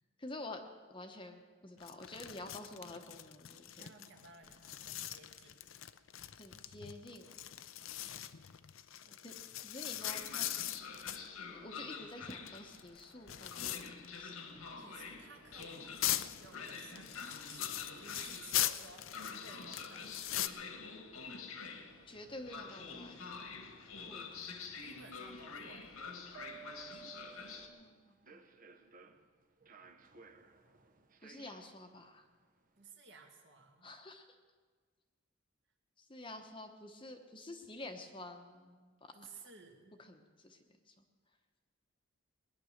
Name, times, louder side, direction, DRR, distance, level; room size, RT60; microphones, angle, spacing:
voice 1, 0.2-0.6 0.9-3.9 6.4-7.4 9.2-9.3 9.6-10.5 11.4-14.6 22.1-23.4 24.0-24.6 26.9-28.4 31.2-32.3 33.8-34.2 36.0-39.2 40.0-40.6 40.9-41.0, left 2 dB, 25° left, 5 dB, 1.0 m, -49 dB
sound 1, 1.8-11.3 12.1-14.3 14.6-14.7 15.5-20.5, left 13 dB, 65° left, 0.5 m, -41 dB
voice 2, 3.6-5.6 8.1-8.3 9.0-9.3 14.8-15.8 16.4-20.6 24.8-26.0 29.0-29.2 32.8-33.9 39.1-39.9, right 4 dB, 55° right, 2 dB, 2.0 m, -57 dB
Train, 10.0-27.7, left 5 dB, 80° left, 1.6 m, -47 dB
sound 2, 15.1-32.9, right 5 dB, 40° right, 0.9 m, -61 dB
20.0 x 10.0 x 6.5 m, 1.5 s
head